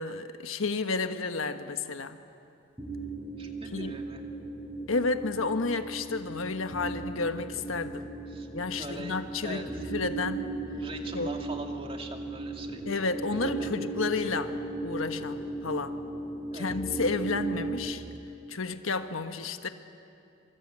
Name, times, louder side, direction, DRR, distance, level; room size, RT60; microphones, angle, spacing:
voice 1, 0.0-2.2 3.7-3.9 4.9-8.1 8.5-9.6 9.9-10.5 11.1-11.3 12.8-14.6 14.8-16.0 16.5-18.0 18.5-19.7, left 3 dB, 85° left, 8 dB, 1.3 m, -31 dB
sound 1, 2.8-17.9, right 2 dB, 10° right, 6.6 m, -37 dB
voice 2, 3.4-4.2 8.3-8.5 8.8-9.9 10.7-13.0 13.4-13.7 16.5-17.0, right 2 dB, 30° right, 3 dB, 2.3 m, -42 dB
26.5 x 25.5 x 8.8 m, 2.6 s
head